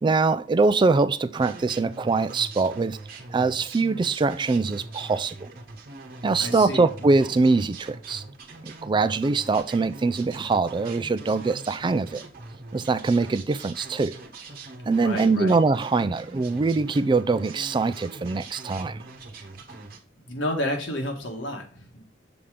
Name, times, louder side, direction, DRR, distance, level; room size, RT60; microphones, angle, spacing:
voice 1, 0.0-3.0 3.3-5.4 6.2-8.2 8.6-12.2 12.7-14.1 14.9-19.0, right 3 dB, 25° right, 0.3 m, -23 dB
sound 1, 1.3-20.0, right 3 dB, 55° right, 1.2 m, -42 dB
voice 2, 6.4-7.1 14.9-15.5 20.2-22.1, left 1 dB, 85° left, 1.7 m, -31 dB
6.9 x 3.7 x 4.9 m
head